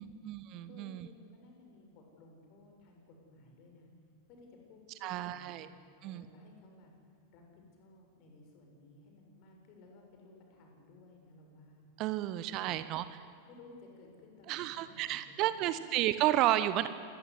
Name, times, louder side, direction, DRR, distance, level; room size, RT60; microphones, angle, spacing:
voice 1, 0.0-1.1 5.0-5.7 6.0-6.3 12.0-13.1 14.5-16.9, right 14 dB, 40° right, 13 dB, 1.1 m, -32 dB
voice 2, 0.7-3.9 4.3-5.7 6.0-6.9 7.3-11.9 12.4-13.0 13.4-15.7, left 2 dB, 40° left, 2 dB, 7.3 m, -57 dB
27.5 x 19.5 x 9.8 m, 2.4 s
figure-of-eight pair, 90°, 0 cm